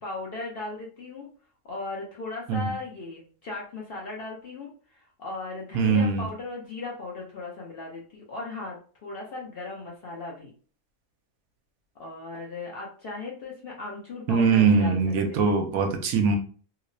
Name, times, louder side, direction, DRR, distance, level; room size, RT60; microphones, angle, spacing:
voice 1, 0.0-1.3 1.6-10.5 12.0-15.0 15.3-15.5, left 3 dB, 55° left, -2 dB, 0.7 m, -37 dB
voice 2, 5.7-6.3 14.3-16.4, right 5 dB, 80° right, 5 dB, 1.0 m, -22 dB
2.8 x 2.0 x 2.5 m, 0.40 s
omnidirectional pair, 1.5 m